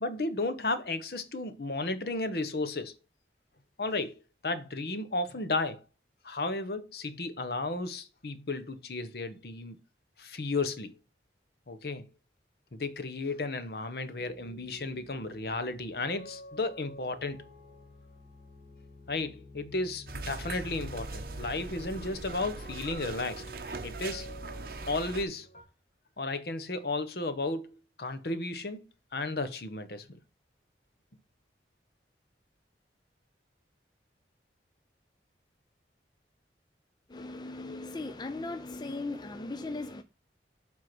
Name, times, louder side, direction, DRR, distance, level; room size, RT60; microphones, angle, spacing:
voice 1, 0.0-2.9 3.8-4.1 4.4-5.8 6.2-9.8 10.2-11.0 11.7-12.1 12.7-17.5 19.1-23.4 23.8-24.3 24.9-25.5 26.2-28.8 29.1-30.2, left 2 dB, 60° left, 0.9 m, -34 dB
sound 1, 14.2-25.6, equal, 40° left, 1.7 m, -50 dB
sound 2, 20.1-25.3, right 3 dB, 55° right, 0.8 m, -40 dB
voice 2, 37.1-40.0, left 2 dB, 25° left, 0.5 m, -38 dB
7.7 x 3.7 x 6.0 m
head